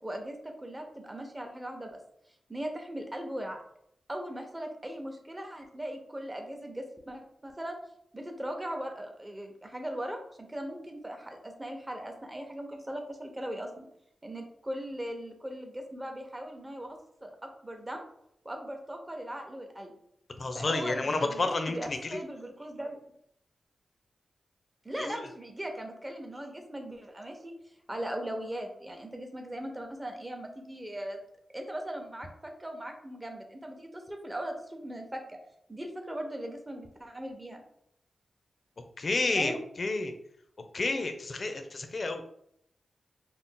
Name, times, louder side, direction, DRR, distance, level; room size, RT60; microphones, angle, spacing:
voice 1, 0.0-2.0 2.5-3.6 4.1-7.8 8.1-10.2 10.5-13.9 14.2-18.1 18.4-19.9 20.5-23.0 24.8-27.5 27.9-31.2 31.5-35.4 35.7-37.6 39.3-39.6, right 1 dB, 20° right, 4 dB, 0.7 m, -39 dB
voice 2, 20.4-22.2 25.0-25.3 39.0-40.1 40.7-42.2, left 3 dB, 55° left, 7 dB, 0.4 m, -30 dB
2.5 x 2.1 x 3.6 m, 0.72 s
cardioid pair, 50°, 0 cm